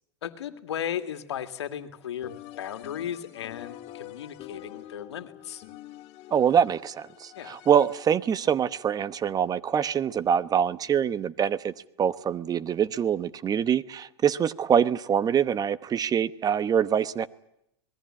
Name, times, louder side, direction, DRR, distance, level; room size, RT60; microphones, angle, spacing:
voice 1, 0.2-5.6 7.3-7.6, left 9 dB, 80° left, 2.2 m, -36 dB
sound 1, 2.2-8.3, left 13 dB, 50° left, 2.5 m, -46 dB
voice 2, 6.3-11.7 12.0-17.3, right 8 dB, 25° right, 1.0 m, -24 dB
26.5 x 20.5 x 8.8 m
hypercardioid pair, 105°, 14 cm